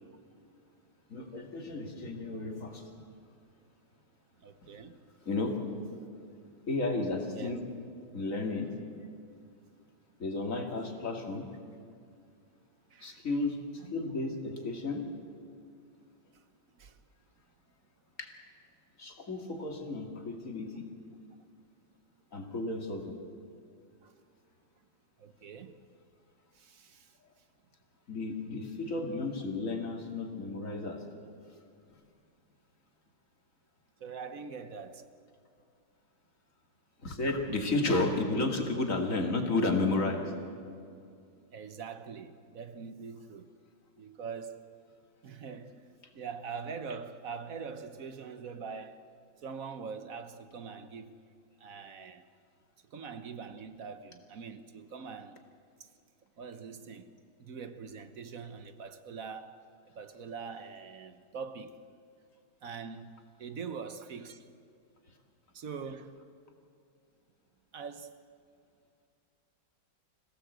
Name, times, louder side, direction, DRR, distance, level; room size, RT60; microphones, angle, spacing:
voice 1, 1.1-2.9 5.3-5.6 5.9-6.1 6.7-7.6 8.1-8.7 10.2-11.5 13.0-15.0 18.2-18.3 19.0-20.9 22.3-23.2 28.1-31.0 37.0-40.3, left 2 dB, 40° left, 2.7 m, -32 dB
voice 2, 4.4-5.1 7.3-7.5 10.5-10.7 12.9-13.2 13.8-13.9 16.3-16.4 16.7-17.0 24.0-24.2 25.2-25.8 26.5-27.2 34.0-35.1 41.5-43.5 44.0-44.6 45.2-45.8 46.1-49.1 49.4-51.2 51.6-52.3 52.9-55.4 55.8-55.9 56.4-57.1 57.4-59.6 59.9-61.8 62.6-64.5 65.5-66.2 67.7-68.2, right 5 dB, 55° right, 1.2 m, -43 dB
26.5 x 17.0 x 8.1 m
omnidirectional pair, 2.1 m